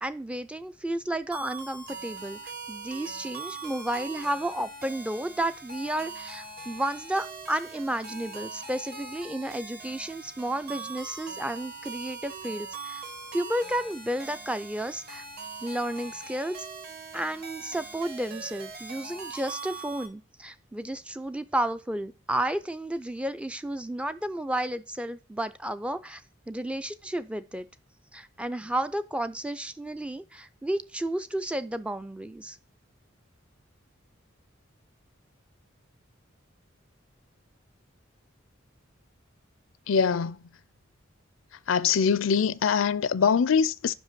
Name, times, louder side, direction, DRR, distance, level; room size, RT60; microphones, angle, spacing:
voice 1, 0.0-2.4 2.7-13.0 13.3-15.2 15.6-16.7 17.1-26.2 26.5-27.7 28.1-32.6, right 1 dB, 5° right, 0.3 m, -32 dB
sound 1, 1.3-20.1, right 4 dB, 50° right, 1.6 m, -41 dB
voice 2, 39.9-40.4 41.7-43.9, left 6 dB, 80° left, 0.5 m, -23 dB
5.6 x 5.4 x 6.7 m
head